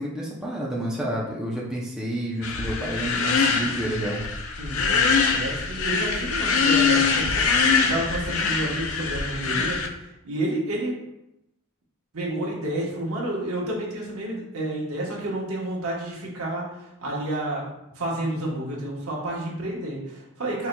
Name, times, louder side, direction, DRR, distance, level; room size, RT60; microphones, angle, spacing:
voice 1, 0.0-4.2, right 1 dB, 5° right, -5 dB, 0.5 m, -29 dB
sound 1, 2.4-9.9, left 5 dB, 70° left, 0.5 m, -23 dB
voice 2, 4.6-10.9 12.1-17.7 17.9-20.7, right 1 dB, 75° right, -3 dB, 1.1 m, -30 dB
4.3 x 3.9 x 2.2 m, 0.86 s
head